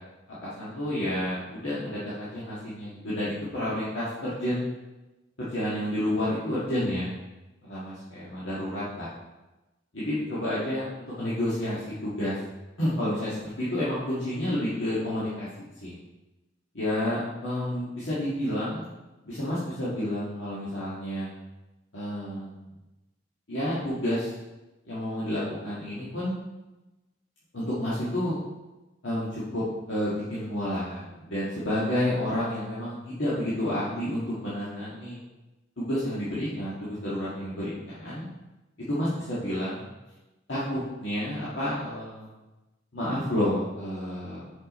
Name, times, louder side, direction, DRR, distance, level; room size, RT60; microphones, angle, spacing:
voice 1, 0.4-4.6 5.4-7.2 7.6-9.1 9.9-12.4 12.8-15.9 16.7-18.9 19.2-21.3 21.9-22.6 23.5-24.3 24.9-26.4 27.5-28.4 29.0-29.6 29.9-35.2 35.8-38.3 38.9-39.9 40.5-42.3 42.9-44.5, left 1 dB, 90° left, -9 dB, 1.7 m, -30 dB
6.1 x 5.5 x 4.1 m, 1.1 s
head